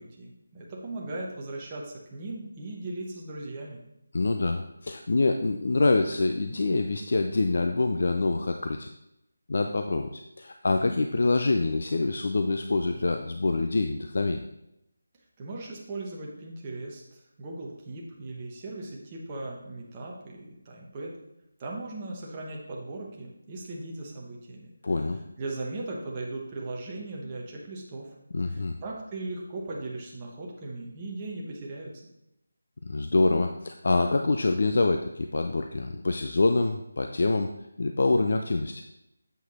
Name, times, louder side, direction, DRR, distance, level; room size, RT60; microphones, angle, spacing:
voice 1, 0.0-3.8 15.4-21.2 21.6-24.7 25.4-28.1 28.4-31.9, right 2 dB, 15° right, -3 dB, 0.9 m, -38 dB
voice 2, 4.1-8.9 9.5-14.4 24.8-25.2 28.3-28.8 32.8-37.5 37.8-38.8, left 3 dB, 45° left, 5 dB, 0.4 m, -25 dB
7.9 x 5.0 x 4.1 m, 0.86 s
figure-of-eight pair, 180°, 0 cm